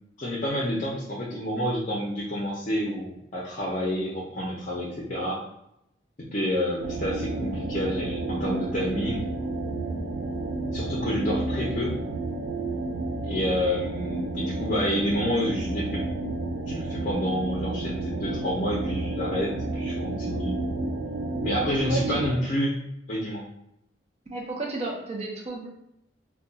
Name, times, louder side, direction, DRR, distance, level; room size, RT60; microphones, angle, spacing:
voice 1, 0.2-5.4 6.2-9.3 10.7-11.9 13.2-16.0 16.7-20.6 21.4-22.8 23.1-23.4, equal, 45° left, -4 dB, 0.5 m, -29 dB
sound 1, 6.8-22.3, right 2 dB, 80° right, 0.4 m, -31 dB
voice 2, 21.9-22.2 24.3-25.7, right 2 dB, 35° right, -1 dB, 0.6 m, -32 dB
2.3 x 2.2 x 3.9 m, 0.79 s
head